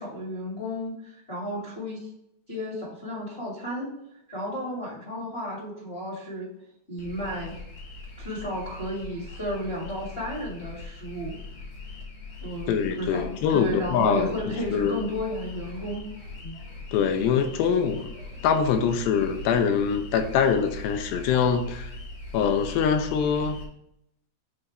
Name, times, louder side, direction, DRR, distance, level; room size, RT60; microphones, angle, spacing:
voice 1, 0.0-2.1 2.5-3.9 4.3-6.5 6.9-7.5 8.2-11.3 12.4-16.1 16.4-16.5, equal, 25° left, 1.3 m, -33 dB
sound 1, 7.0-23.7, left 2 dB, 45° left, 1.7 m, -40 dB
voice 2, 12.7-15.0 16.9-18.1 18.4-21.9 22.3-23.6, left 7 dB, 80° left, 2.4 m, -24 dB
7.9 x 4.0 x 3.3 m
omnidirectional pair, 4.6 m